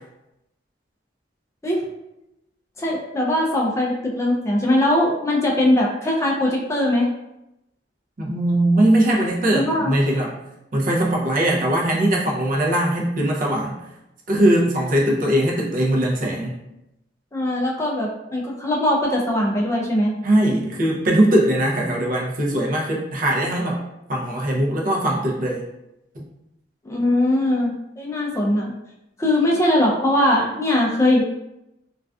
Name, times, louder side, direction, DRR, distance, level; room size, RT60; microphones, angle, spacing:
voice 1, 2.8-7.1 9.5-9.9 17.3-20.1 26.8-28.7 29.2-31.2, left 1 dB, 15° left, -2 dB, 0.3 m, -20 dB
voice 2, 8.2-10.3 10.7-13.8 14.3-16.5 20.2-23.8 24.1-25.6 26.1-26.2, right 1 dB, 50° right, -2 dB, 0.5 m, -20 dB
2.4 x 2.3 x 2.2 m, 0.89 s
head